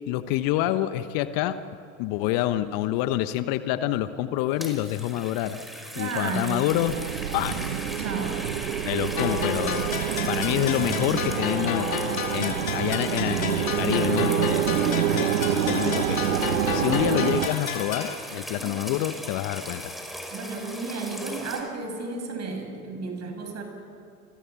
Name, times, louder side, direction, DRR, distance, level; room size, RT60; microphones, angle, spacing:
voice 1, 0.1-1.6 2.0-5.6 6.0-6.9 7.3-7.7 8.9-9.9 10.3-11.9 12.3-16.2 16.7-19.9, left 13 dB, 55° left, 12 dB, 1.3 m, -27 dB
sound 1, 4.4-21.6, equal, ahead, 5.1 m, -38 dB
voice 2, 5.9-6.6 8.0-8.4 18.5-18.7 20.3-23.6, right 4 dB, 40° right, 5 dB, 6.6 m, -33 dB
sound 2, 6.7-17.5, right 10 dB, 75° right, 1.2 m, -27 dB
sound 3, 9.2-18.2, left 6 dB, 80° left, 2.5 m, -32 dB
29.0 x 23.0 x 7.1 m, 2.5 s
figure-of-eight pair, 70°, 41 cm